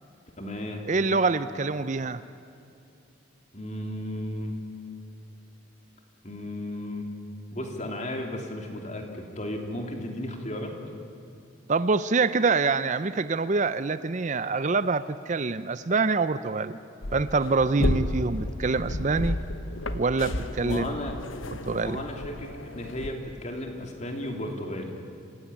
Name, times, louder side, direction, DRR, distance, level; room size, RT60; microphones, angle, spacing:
voice 1, 0.4-0.8 3.5-4.5 6.2-7.1 7.5-10.7 20.6-21.1 21.8-24.9, left 1 dB, 35° left, 2 dB, 3.1 m, -34 dB
voice 2, 0.9-2.2 11.7-16.8 17.1-19.4 19.9-21.0 21.6-22.0, right 4 dB, 35° right, 14 dB, 0.5 m, -25 dB
sound 1, 17.0-23.1, left 1 dB, 80° left, 1.3 m, -32 dB
27.0 x 16.5 x 9.9 m, 2.5 s
head